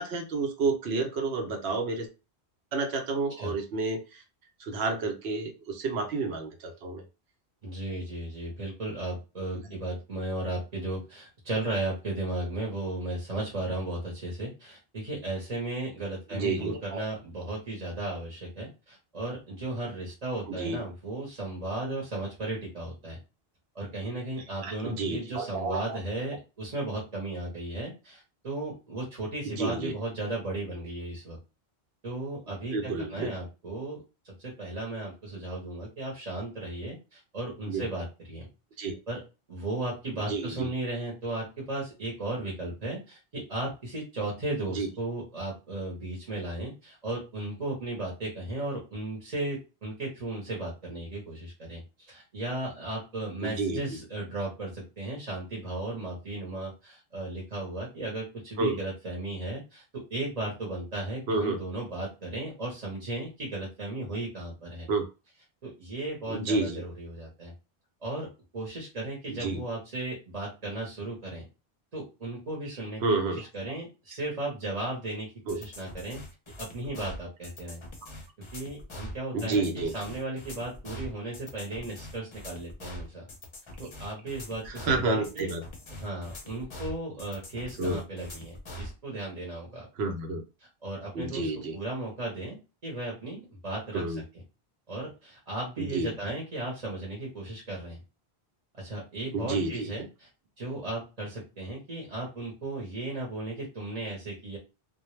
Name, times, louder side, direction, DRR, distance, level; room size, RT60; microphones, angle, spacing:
voice 1, 0.0-2.1 2.7-4.2 4.6-7.0 16.3-17.0 20.5-20.8 24.6-26.0 29.4-29.9 32.7-33.3 37.7-37.8 38.8-39.0 40.3-40.7 44.7-44.9 53.4-53.8 58.6-58.8 61.3-61.6 64.9-65.0 66.3-66.8 69.3-69.6 73.0-73.5 75.5-75.6 79.3-79.9 84.7-85.6 87.8-88.0 90.0-90.4 91.1-91.8 93.9-94.2 95.8-96.1 99.3-99.9, right 3 dB, 80° right, 5 dB, 0.9 m, -30 dB
voice 2, 7.6-23.2 23.7-31.4 32.0-38.5 39.1-39.2 39.5-59.8 60.1-64.9 65.6-67.5 68.0-68.3 68.5-71.4 71.9-73.0 73.4-76.2 76.6-77.8 78.5-83.2 83.8-85.5 85.9-89.9 90.6-94.2 94.9-98.0 98.8-100.3 100.6-104.6, right 2 dB, 40° right, -3 dB, 0.8 m, -35 dB
sound 1, 75.5-88.9, equal, 35° left, 0.5 m, -43 dB
2.1 x 2.1 x 3.0 m, 0.30 s
omnidirectional pair, 1.1 m